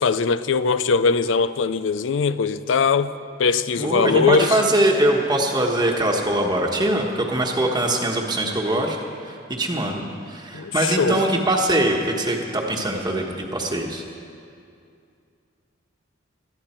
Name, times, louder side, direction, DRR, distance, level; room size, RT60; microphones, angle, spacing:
voice 1, 0.0-3.1 3.4-4.6 10.5-11.2, left 5 dB, 75° left, 0.5 m, -21 dB
voice 2, 3.8-9.0 9.2-14.0, right 1 dB, 20° right, 1.3 m, -22 dB
21.0 x 13.5 x 4.5 m
head